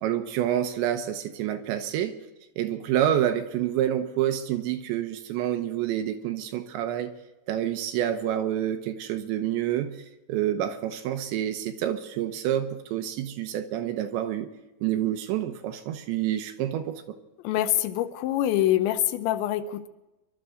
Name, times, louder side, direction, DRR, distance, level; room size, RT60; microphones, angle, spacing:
voice 1, 0.0-2.2 2.6-7.1 7.5-10.0 10.3-14.5 14.8-17.2, right 11 dB, 75° right, 7 dB, 3.1 m, -28 dB
voice 2, 17.4-19.9, left 12 dB, 80° left, 11 dB, 3.0 m, -25 dB
25.0 x 12.5 x 3.8 m, 1.0 s
omnidirectional pair, 5.4 m